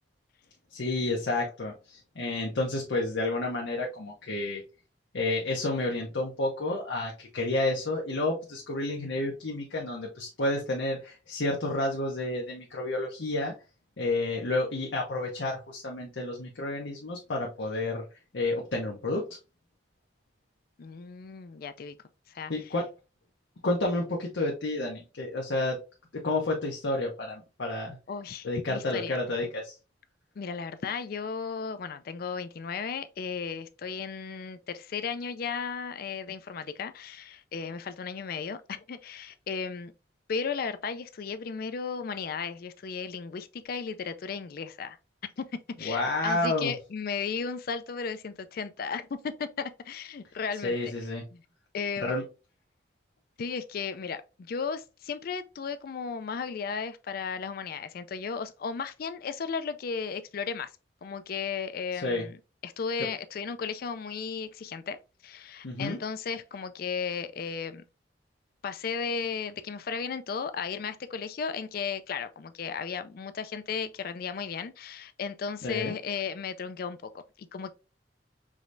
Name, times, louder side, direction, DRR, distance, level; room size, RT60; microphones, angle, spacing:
voice 1, 0.7-4.6 5.1-13.5 14.0-18.0 18.3-19.2 22.5-22.9 23.6-25.8 26.2-28.0 28.4-29.7 45.8-46.7 50.6-51.2 52.0-52.2 62.0-62.3 65.6-66.0 75.6-75.9, left 2 dB, 80° left, 0.8 m, -30 dB
voice 2, 20.8-22.0 22.3-22.5 28.1-29.2 30.4-39.9 40.3-45.0 45.8-50.9 51.3-51.4 51.7-52.1 53.4-60.7 61.0-62.4 62.6-65.0 65.2-67.8 68.6-77.7, left 6 dB, 55° left, 0.4 m, -35 dB
4.9 x 3.2 x 2.6 m
head